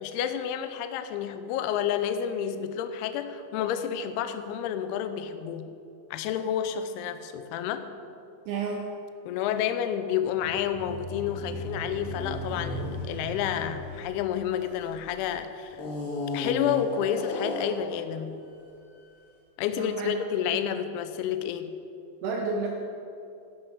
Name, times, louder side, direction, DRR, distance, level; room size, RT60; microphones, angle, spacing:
voice 1, 0.0-5.7 6.1-7.8 9.3-15.8 16.3-18.3 19.6-21.7, left 9 dB, 80° left, 9 dB, 2.3 m, -30 dB
voice 2, 8.5-8.8 19.8-20.1 20.7-20.8 22.2-22.7, right 4 dB, 75° right, 0 dB, 2.4 m, -30 dB
sound 1, 10.3-15.1 15.7-17.9, left 2 dB, 45° left, 2.0 m, -35 dB
11.5 x 5.8 x 6.6 m, 2.6 s
omnidirectional pair, 5.0 m